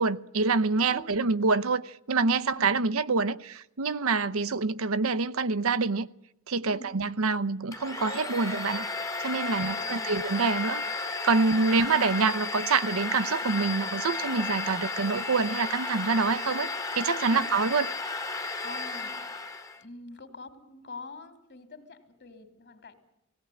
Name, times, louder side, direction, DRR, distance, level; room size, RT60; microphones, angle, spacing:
voice 1, 0.0-6.1 6.5-8.9 9.2-17.9, right 4 dB, 70° right, 0.7 m, -26 dB
voice 2, 2.4-2.8 6.7-6.9 9.5-10.2 17.3-17.5 18.6-19.1 19.8-22.9, left 3 dB, 55° left, 2.9 m, -46 dB
Domestic sounds home sounds, 7.7-19.8, left 3 dB, 15° left, 1.2 m, -33 dB
19.0 x 17.5 x 9.9 m
head